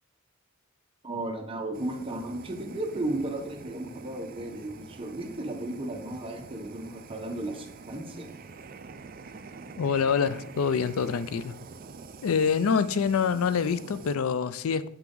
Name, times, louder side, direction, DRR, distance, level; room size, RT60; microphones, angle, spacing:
voice 1, 1.0-8.3, right 1 dB, 25° right, 1.0 m, -34 dB
Fire, 1.7-14.2, right 4 dB, 40° right, 0.4 m, -46 dB
voice 2, 9.8-11.5 12.2-14.9, left 6 dB, 80° left, 0.4 m, -26 dB
8.0 x 5.9 x 3.8 m
head